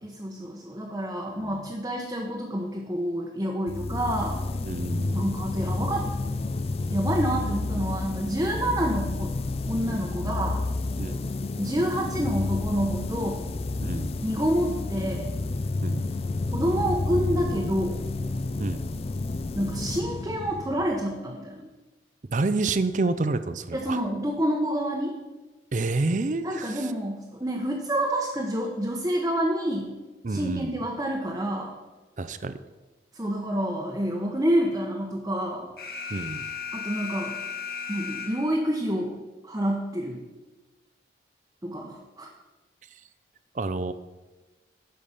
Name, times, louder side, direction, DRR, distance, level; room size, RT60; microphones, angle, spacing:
voice 1, 0.0-4.4 5.1-6.0 6.9-9.4 9.7-10.6 11.6-13.4 14.2-15.3 16.5-18.0 19.6-21.7 23.7-25.1 26.4-29.9 30.3-31.8 33.1-35.7 36.7-37.3 37.9-39.2 39.4-40.2 41.6-42.3, equal, 20° right, -1 dB, 0.9 m, -28 dB
sound 1, 3.7-21.2, left 2 dB, 35° left, 0.4 m, -30 dB
voice 2, 4.6-5.2 11.0-11.3 13.8-14.1 15.8-16.0 18.6-18.8 22.3-24.0 25.7-26.8 30.2-30.7 32.2-32.5 36.1-36.4 43.5-43.9, right 3 dB, 45° right, 12 dB, 0.5 m, -28 dB
Alarm, 35.8-38.7, left 6 dB, 55° left, 1.5 m, -35 dB
12.0 x 5.1 x 5.7 m, 1.2 s
head